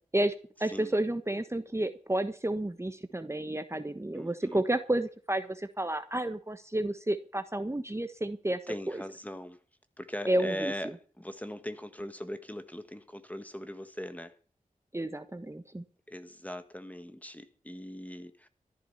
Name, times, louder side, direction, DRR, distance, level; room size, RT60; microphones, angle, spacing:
voice 1, 0.1-8.6 8.9-9.0 10.3-10.7 14.9-15.8, right 1 dB, 20° right, 1.3 m, -31 dB
voice 2, 4.1-4.6 8.7-9.6 10.0-14.3 16.1-18.5, equal, 10° left, 1.6 m, -40 dB
14.0 x 11.0 x 5.7 m
cardioid pair, 40°, 14 cm